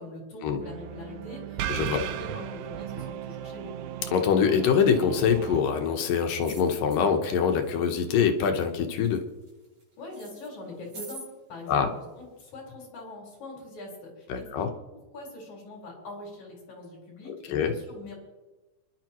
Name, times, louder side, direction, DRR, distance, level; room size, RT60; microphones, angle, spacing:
voice 1, 0.0-1.6 1.9-3.7 10.0-14.7 14.9-18.1, left 2 dB, 60° left, -2 dB, 5.8 m, -42 dB
sound 1, 0.6-5.6, right 11 dB, 80° right, 1.8 m, -36 dB
voice 2, 1.7-2.0 4.1-9.2 11.7-11.9 14.3-14.7 17.5-17.7, left 7 dB, 80° left, 5 dB, 2.8 m, -24 dB
sound 2, 4.7-4.9 5.2-5.9 6.4-7.0 7.6-8.1 8.4-9.8 10.1-11.3 12.1-12.2, right 2 dB, 50° right, 7.8 m, -46 dB
28.5 x 11.5 x 3.0 m, 1.1 s
omnidirectional pair, 3.8 m